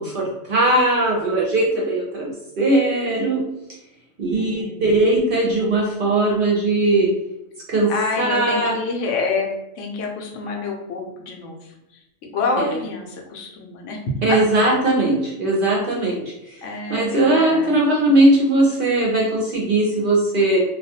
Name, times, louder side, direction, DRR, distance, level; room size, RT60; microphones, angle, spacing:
voice 1, 0.0-3.4 4.2-7.1 7.7-7.9 8.2-8.7 12.6-12.7 14.2-16.2 16.9-20.6, right 2 dB, 60° right, -3 dB, 0.6 m, -19 dB
voice 2, 4.3-5.0 7.9-9.5 9.7-12.0 12.3-14.0 14.3-14.4 16.6-17.8, left 4 dB, 75° left, 0 dB, 0.9 m, -28 dB
2.3 x 2.2 x 2.7 m, 0.88 s
omnidirectional pair, 1.3 m